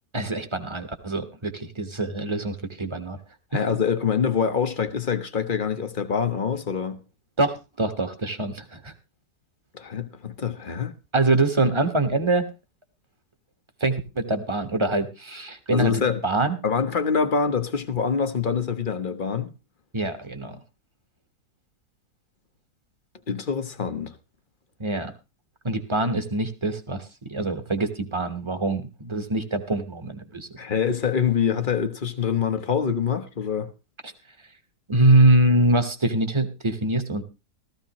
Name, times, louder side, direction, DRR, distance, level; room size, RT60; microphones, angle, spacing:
voice 1, 0.1-3.2 3.5-3.6 7.4-8.9 11.1-12.5 13.8-15.9 16.2-16.6 19.9-20.6 24.8-25.1 25.6-30.5 34.9-37.2, right 2 dB, 20° right, 1.1 m, -24 dB
voice 2, 3.5-7.0 9.7-10.9 15.7-16.2 16.6-19.5 23.3-24.1 30.6-33.7, left 6 dB, 35° left, 0.9 m, -25 dB
15.0 x 14.0 x 3.0 m
omnidirectional pair, 1.8 m